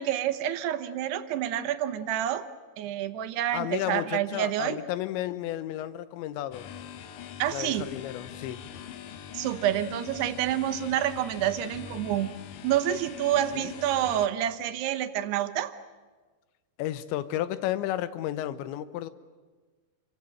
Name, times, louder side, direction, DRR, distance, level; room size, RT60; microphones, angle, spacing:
voice 1, 0.0-2.5 2.8-4.8 7.4-7.9 9.3-12.3 12.6-15.7, right 11 dB, 75° right, 10 dB, 2.9 m, -28 dB
voice 2, 3.5-6.7 7.5-8.7 13.5-13.7 16.8-19.1, left 13 dB, 85° left, 14 dB, 3.2 m, -32 dB
sound 1, 6.5-14.3, left 9 dB, 65° left, 2.4 m, -43 dB
28.5 x 24.0 x 7.8 m, 1.3 s
omnidirectional pair, 5.1 m